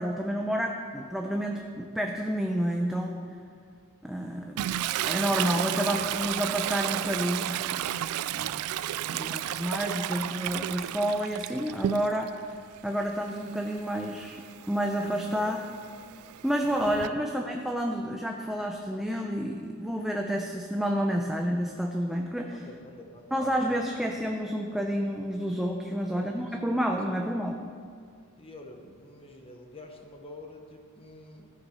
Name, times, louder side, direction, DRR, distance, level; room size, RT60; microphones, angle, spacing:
voice 1, 0.0-3.2 4.0-4.5 4.9-7.5 8.3-8.6 9.1-12.3 12.8-14.4 14.7-15.6 16.4-22.5 23.3-27.6, equal, ahead, 1 dB, 0.6 m, -29 dB
Toilet flush, 4.6-12.4 12.8-17.1, right 12 dB, 75° right, 0.3 m, -33 dB
voice 2, 8.9-10.3 15.3-15.6 17.0-17.2 22.5-24.1 26.0-27.3 28.4-31.5, left 1 dB, 25° left, 3 dB, 1.0 m, -49 dB
14.0 x 8.2 x 5.6 m, 2.2 s
head